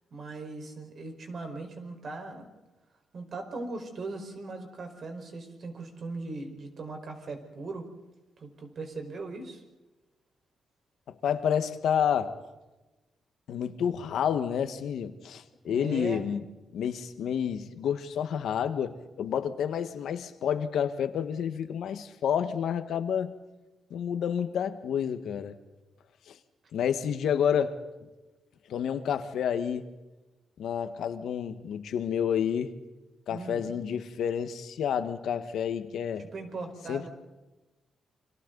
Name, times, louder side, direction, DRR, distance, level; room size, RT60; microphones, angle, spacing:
voice 1, 0.1-2.5 3.1-7.9 8.4-9.6 15.6-16.2 33.3-33.6 36.2-37.1, right 3 dB, 50° right, 4.8 m, -39 dB
voice 2, 11.1-12.3 13.5-16.4 16.7-23.4 23.9-25.6 26.3-26.4 26.7-27.8 28.7-29.9 30.6-32.7 33.3-36.3 36.9-37.0, left 8 dB, 80° left, 1.6 m, -29 dB
29.5 x 26.0 x 4.0 m
cardioid pair, 125°, 0 cm